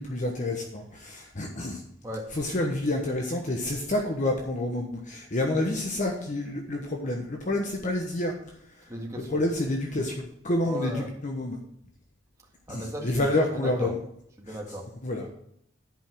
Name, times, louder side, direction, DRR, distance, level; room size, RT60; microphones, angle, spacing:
voice 1, 0.0-1.8 2.3-8.3 8.8-8.9 9.3-11.6 12.7-14.0 14.5-14.6 15.0-15.3, left 1 dB, 40° left, 1 dB, 1.1 m, -28 dB
voice 2, 8.9-9.4 10.6-11.2 12.7-14.0 14.4-14.9, equal, 15° right, -2 dB, 1.9 m, -36 dB
10.5 x 5.5 x 6.1 m, 0.73 s
head